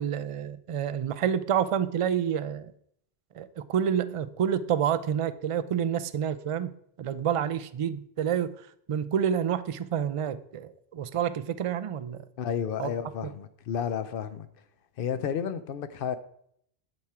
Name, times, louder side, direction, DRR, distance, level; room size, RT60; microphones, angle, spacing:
voice 1, 0.0-2.7 3.3-6.7 7.0-12.2 12.8-12.9 13.2-13.3, right 8 dB, 55° right, 0.3 m, -28 dB
voice 2, 12.4-14.5 15.0-16.2, left 8 dB, 65° left, 0.8 m, -31 dB
11.0 x 4.4 x 4.8 m
omnidirectional pair, 1.1 m